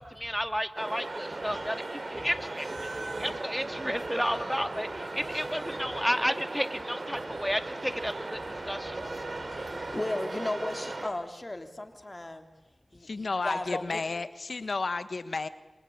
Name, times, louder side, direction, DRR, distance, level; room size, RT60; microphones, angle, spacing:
voice 1, 0.0-2.9 3.2-9.0, equal, ahead, 9 dB, 2.2 m, -32 dB
sound 1, 0.8-11.1, right 2 dB, 55° right, 3.6 m, -37 dB
voice 2, 2.8-3.4 3.9-4.0 5.2-6.0 7.1-7.5 8.4-12.5 12.9-14.0, left 1 dB, 35° left, 6 dB, 3.3 m, -38 dB
voice 3, 13.0-15.5, left 3 dB, 70° left, 12 dB, 1.4 m, -32 dB
26.0 x 26.0 x 8.8 m, 1.1 s
cardioid pair, 40°, 0 cm